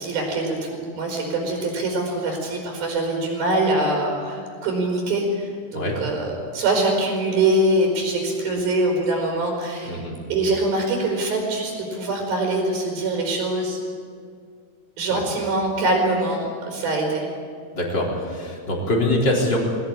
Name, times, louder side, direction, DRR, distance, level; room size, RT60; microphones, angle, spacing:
voice 1, 0.0-10.0 10.3-13.8 15.0-17.2, right 2 dB, 50° right, -2 dB, 5.7 m, -23 dB
voice 2, 17.7-19.6, left 1 dB, 25° left, -2 dB, 4.0 m, -23 dB
22.5 x 17.0 x 8.9 m, 2.3 s
omnidirectional pair, 5.6 m